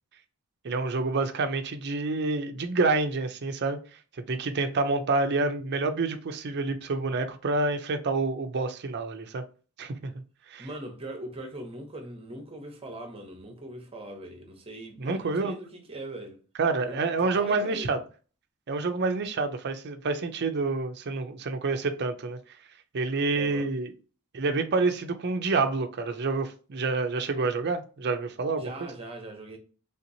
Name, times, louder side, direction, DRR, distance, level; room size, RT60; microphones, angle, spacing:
voice 1, 0.6-3.8 4.2-9.4 9.8-10.1 10.5-10.7 15.0-15.5 16.6-18.0 18.7-22.4 22.9-23.9 24.3-28.9, right 3 dB, 50° right, 0.5 m, -28 dB
voice 2, 10.6-16.4 16.9-17.9 23.3-23.7 28.6-29.6, right 1 dB, 25° right, 0.8 m, -41 dB
3.5 x 2.9 x 2.6 m
head